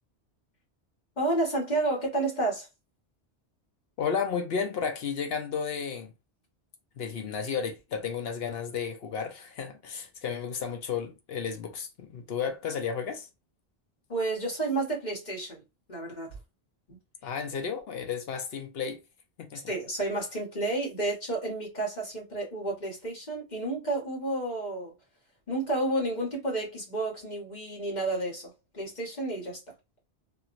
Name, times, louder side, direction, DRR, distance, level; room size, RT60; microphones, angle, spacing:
voice 1, 1.2-2.7 14.1-15.6 15.9-16.4 16.9-17.0 19.7-24.9 25.5-29.6, right 2 dB, 40° left, 1.3 m, -31 dB
voice 2, 4.0-6.1 7.0-13.3 17.2-19.0 19.4-19.7, left 6 dB, 65° left, 0.8 m, -33 dB
2.8 x 2.8 x 2.5 m
omnidirectional pair, 1.1 m